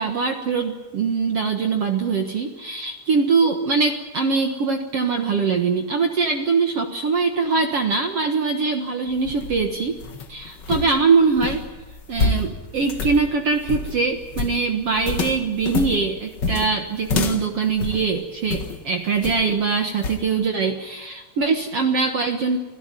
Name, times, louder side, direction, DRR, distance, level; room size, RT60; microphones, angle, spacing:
voice 1, 0.0-10.0 10.3-11.6 12.1-22.6, right 4 dB, 65° right, 4 dB, 1.5 m, -22 dB
sound 1, 9.1-18.8 19.2-19.6 20.0-20.3, left 4 dB, 65° left, 1.0 m, -28 dB
27.5 x 17.0 x 9.0 m, 1.1 s
omnidirectional pair, 4.8 m